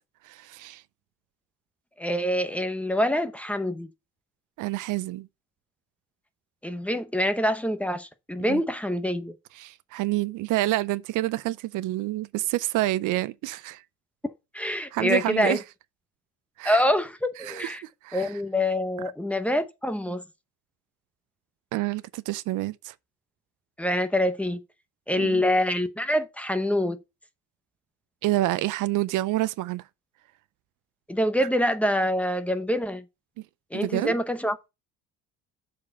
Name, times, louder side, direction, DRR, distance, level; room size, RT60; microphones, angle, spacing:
voice 1, 0.2-0.8 4.6-5.3 8.5-8.6 9.6-13.8 14.9-15.6 16.6-16.8 17.4-17.7 18.0-18.3 21.7-22.9 25.2-25.4 28.2-29.8 33.7-34.1, right 16 dB, 70° right, 0.5 m, -28 dB
voice 2, 2.0-3.9 6.6-9.3 14.5-15.6 16.6-17.8 18.1-20.2 23.8-24.6 25.1-27.0 31.1-33.0 33.7-34.6, left 1 dB, 5° left, 0.7 m, -25 dB
7.3 x 4.3 x 5.6 m
cardioid pair, 140°, 32 cm